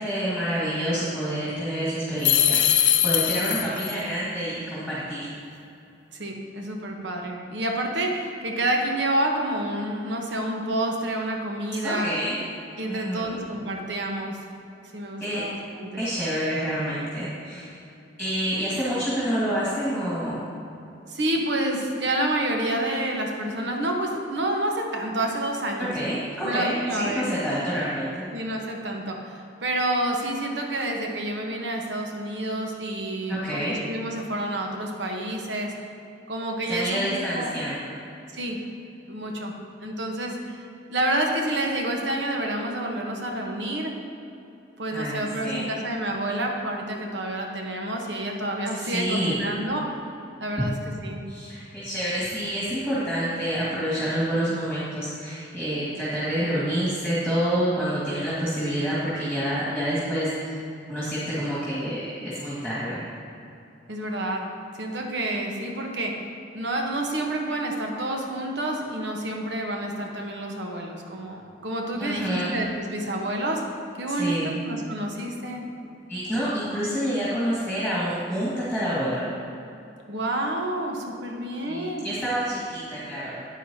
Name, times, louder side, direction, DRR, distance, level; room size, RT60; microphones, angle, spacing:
voice 1, 0.0-5.3 11.8-12.4 12.9-13.4 15.2-15.4 16.0-17.7 18.2-20.4 25.8-28.2 33.3-33.8 36.7-37.9 44.9-45.7 48.8-49.4 51.3-60.6 60.9-63.0 72.0-72.6 74.2-74.6 76.1-79.2 81.7-83.3, equal, 5° right, -10 dB, 1.9 m, -28 dB
sound 1, 2.2-3.9, left 10 dB, 75° left, 0.9 m, -21 dB
voice 2, 6.1-12.1 12.8-14.4 14.9-16.0 21.1-25.9 26.4-27.3 28.3-35.7 36.3-37.1 37.3-37.5 38.3-38.6 39.1-39.5 39.8-43.9 44.8-49.9 50.4-51.2 56.4-56.6 63.9-66.1 66.5-73.6 73.9-75.7 80.1-82.1, right 1 dB, 85° right, 1 dB, 1.1 m, -29 dB
9.3 x 9.2 x 2.8 m, 2.8 s
head